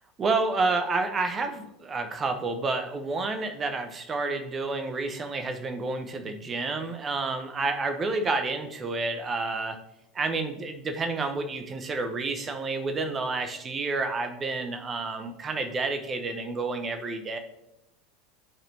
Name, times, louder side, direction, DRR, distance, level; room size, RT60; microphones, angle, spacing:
voice 1, 0.2-9.8 10.1-17.4, right 3 dB, 25° right, 7 dB, 0.9 m, -29 dB
12.0 x 4.3 x 2.7 m, 0.87 s
figure-of-eight pair, 80°, 0 cm